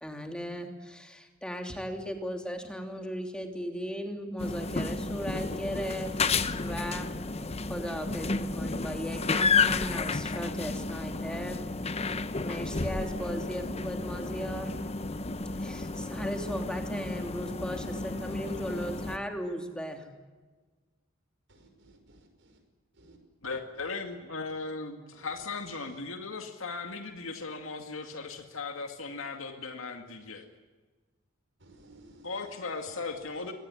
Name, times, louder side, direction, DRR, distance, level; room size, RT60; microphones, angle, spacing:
voice 1, 0.0-6.2 6.6-7.1 7.7-12.2 12.4-14.7 15.5-20.1, equal, 5° left, 3.1 m, -37 dB
sound 1, 4.4-19.2, left 4 dB, 30° left, 0.9 m, -32 dB
voice 2, 21.5-22.6 22.9-23.2 23.8-24.0 24.5-24.7 25.1-25.3 25.8-26.0 31.6-32.3 32.6-33.5, right 1 dB, 65° right, 5.6 m, -57 dB
voice 3, 23.4-30.5 32.2-33.5, left 4 dB, 85° left, 2.2 m, -37 dB
24.0 x 18.5 x 9.8 m
head